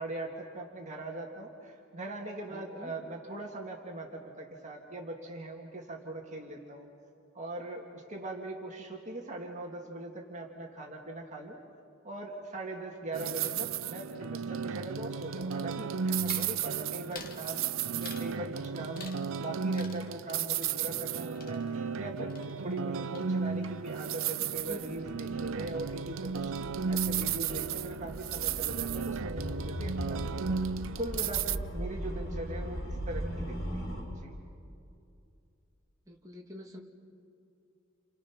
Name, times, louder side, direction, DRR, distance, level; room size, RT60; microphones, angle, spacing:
voice 1, 0.0-6.9 7.3-11.6 12.0-26.6 26.9-30.6 31.0-34.4, right 2 dB, 35° right, 0 dB, 2.0 m, -41 dB
voice 2, 2.5-2.9 24.7-25.0 36.1-36.8, equal, 15° right, -2 dB, 2.3 m, -46 dB
sound 1, 13.1-31.6, right 6 dB, 70° right, 0.5 m, -34 dB
sound 2, 16.2-16.6 17.1-17.4 18.0-18.4 18.9-19.5 19.7-22.0 22.3-22.9 23.1-23.7, left 4 dB, 45° left, 2.0 m, -49 dB
sound 3, 24.6-34.0, equal, 75° left, 7.5 m, -39 dB
29.5 x 28.0 x 5.9 m, 2.5 s
head